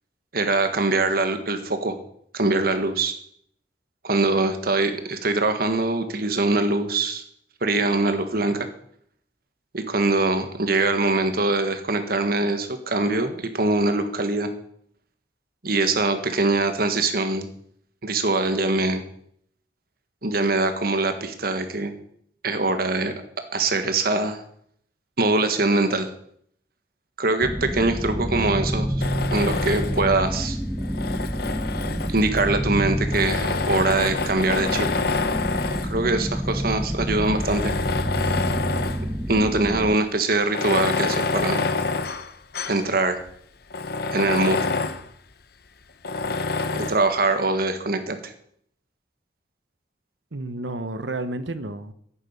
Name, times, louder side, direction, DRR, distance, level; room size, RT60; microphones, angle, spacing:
voice 1, 0.3-2.0 2.3-3.2 4.0-7.2 7.6-8.7 9.7-14.5 15.6-17.5 18.0-19.0 20.2-21.9 22.4-23.1 23.5-24.4 25.2-26.1 27.2-30.6 32.1-34.9 35.8-37.7 39.3-41.6 42.7-43.2 44.1-44.6 46.7-48.3, right 2 dB, 55° right, 8 dB, 1.7 m, -23 dB
sound 1, 27.4-39.9, equal, 5° right, 0.5 m, -28 dB
Tools, 29.0-30.1 30.8-32.4 33.1-36.0 36.7-36.8 37.3-39.1 39.5-39.6 40.4-42.9 43.3-43.4 43.7-45.1 46.0-47.1, left 3 dB, 60° left, 0.9 m, -27 dB
voice 2, 50.3-51.9, right 2 dB, 90° right, 12 dB, 1.1 m, -31 dB
11.0 x 8.9 x 8.3 m, 0.68 s
head